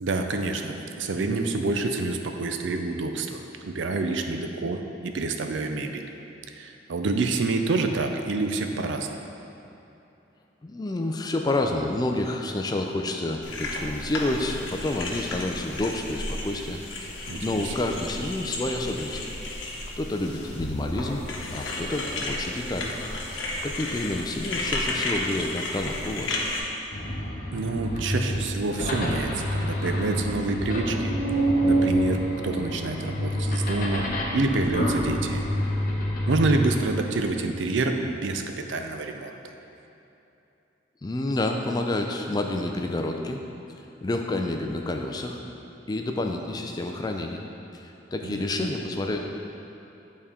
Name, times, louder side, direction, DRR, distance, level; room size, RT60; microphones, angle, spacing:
voice 1, 0.0-6.1 6.5-9.3 17.3-17.7 27.5-31.1 31.6-34.0 34.3-35.4 36.3-39.4 48.2-48.7, right 3 dB, 75° right, 5 dB, 0.5 m, -27 dB
voice 2, 10.6-16.8 17.1-19.3 20.0-21.2 21.5-22.9 23.6-26.4 41.0-43.4 44.0-45.4 45.9-47.4 47.7-49.2, left 2 dB, 20° left, 3 dB, 0.3 m, -29 dB
sound 1, 13.4-26.6, left 2 dB, 80° left, 0.9 m, -33 dB
sound 2, 26.9-36.8, equal, 45° left, 0.8 m, -27 dB
8.8 x 4.2 x 3.6 m, 2.8 s
head